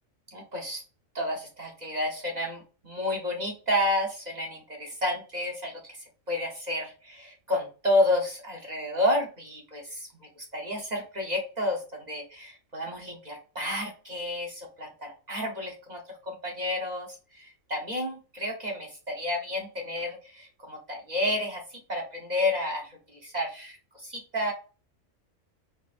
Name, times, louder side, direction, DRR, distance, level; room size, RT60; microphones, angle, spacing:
voice 1, 0.3-0.8 1.1-6.0 6.3-10.1 10.4-24.5, left 1 dB, 35° right, 0 dB, 0.9 m, -31 dB
4.1 x 3.0 x 2.5 m, 0.35 s
omnidirectional pair, 1.4 m